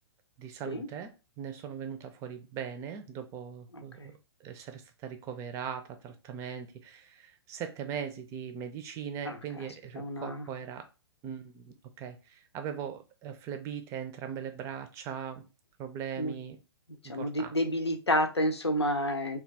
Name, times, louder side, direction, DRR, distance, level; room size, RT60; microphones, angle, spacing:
voice 1, 0.4-10.9 11.2-15.4 15.8-16.6 17.1-17.5, right 8 dB, 20° right, 0.5 m, -40 dB
voice 2, 3.7-4.1 9.3-9.6 10.0-10.4 16.2-16.3 17.0-19.4, equal, 85° left, 0.6 m, -30 dB
3.0 x 2.3 x 3.4 m
figure-of-eight pair, 115°, 14 cm